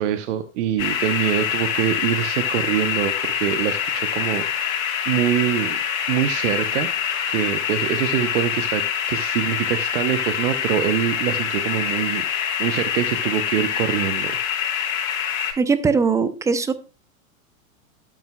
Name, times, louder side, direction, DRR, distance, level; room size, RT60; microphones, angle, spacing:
voice 1, 0.0-5.8 6.1-14.4, right 11 dB, 60° right, 10 dB, 0.9 m, -25 dB
sound 1, 0.8-15.5, left 9 dB, 65° left, 3.7 m, -25 dB
voice 2, 15.6-16.7, right 5 dB, 10° right, 13 dB, 0.4 m, -20 dB
12.5 x 9.2 x 2.2 m, 0.32 s
hypercardioid pair, 105°, 42 cm